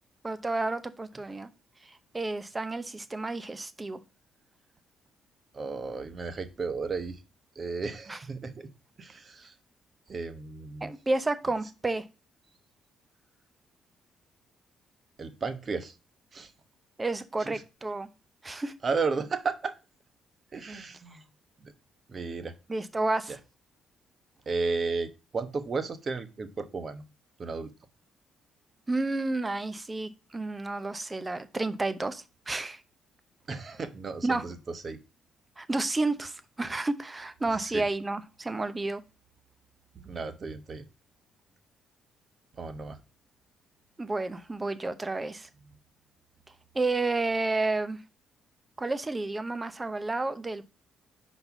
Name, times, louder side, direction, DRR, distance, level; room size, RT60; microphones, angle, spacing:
voice 1, 0.2-1.5 2.1-4.0 8.1-8.2 10.8-12.0 17.0-18.1 18.4-18.7 22.7-23.4 28.9-32.8 34.2-34.4 35.6-39.0 44.0-45.5 46.7-48.0 48.8-50.6, right 2 dB, 20° right, 12 dB, 0.8 m, -31 dB
voice 2, 5.5-7.2 7.5-8.7 9.0-9.5 10.1-10.9 15.2-15.9 16.3-16.5 17.4-17.6 18.8-19.7 20.5-21.2 21.6-21.7 22.1-22.5 23.3-23.4 24.5-27.0 27.4-27.7 33.5-35.0 37.6-37.8 40.0-40.9 42.6-43.0, right 4 dB, 40° right, 10 dB, 1.0 m, -34 dB
5.3 x 4.1 x 5.9 m, 0.31 s
cardioid pair, 90°, 0 cm